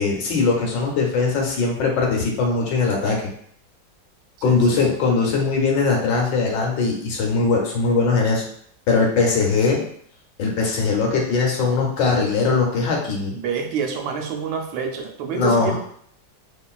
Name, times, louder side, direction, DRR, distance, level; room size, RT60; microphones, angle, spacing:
voice 1, 0.0-3.2 4.4-8.4 8.9-9.8 10.4-13.3 15.3-15.8, left 4 dB, 75° left, 0 dB, 1.3 m, -20 dB
voice 2, 4.4-4.8 13.3-15.8, right 6 dB, 90° right, 2 dB, 1.3 m, -27 dB
3.0 x 2.5 x 2.3 m, 0.65 s
omnidirectional pair, 2.0 m